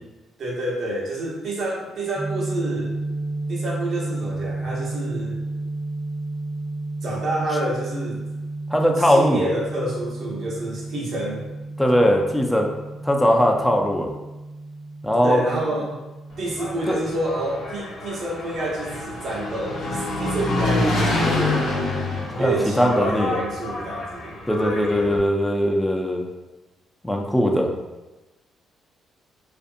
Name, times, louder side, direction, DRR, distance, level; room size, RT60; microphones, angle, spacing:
voice 1, 0.4-2.9 3.5-5.4 7.0-8.2 9.0-11.5 15.2-16.0 16.4-21.7 22.4-25.2, right 1 dB, 60° right, -3 dB, 0.8 m, -28 dB
sound 1, 2.2-17.8, right 2 dB, 20° right, 0.7 m, -32 dB
voice 2, 8.7-9.4 11.8-12.7 13.0-14.1 15.0-15.4 16.9-17.0 22.1-23.3 24.5-26.2 27.0-27.7, equal, 5° left, 1 dB, 0.4 m, -20 dB
Engine, 16.3-25.2, left 2 dB, 80° left, 0.7 m, -27 dB
2.5 x 2.5 x 2.5 m, 1.1 s
cardioid pair, 90°, 0 cm